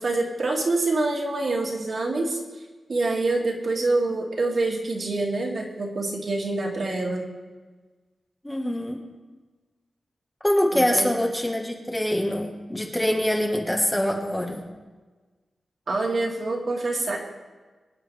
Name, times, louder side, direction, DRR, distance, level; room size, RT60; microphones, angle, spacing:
voice 1, 0.0-2.4 2.9-7.3 10.7-11.1 15.9-17.2, right 2 dB, 50° right, -1 dB, 2.6 m, -26 dB
voice 2, 8.4-9.0 10.4-14.6, left 1 dB, 10° left, 0 dB, 1.5 m, -24 dB
24.5 x 9.6 x 3.5 m, 1.3 s
wide cardioid pair, 145°, 0 cm